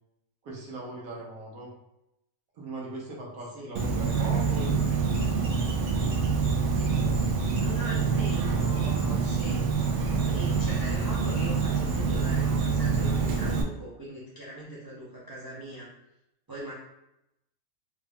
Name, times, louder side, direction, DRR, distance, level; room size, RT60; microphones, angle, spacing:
voice 1, 0.4-1.7 2.5-5.2, right 2 dB, 85° right, -3 dB, 1.4 m, -39 dB
Insect, 3.8-13.6, right 5 dB, 65° right, 0.8 m, -26 dB
voice 2, 7.6-9.7 10.0-15.9 16.5-16.7, right 1 dB, 30° right, -7 dB, 0.4 m, -40 dB
3.6 x 2.3 x 3.4 m, 0.86 s
omnidirectional pair, 1.4 m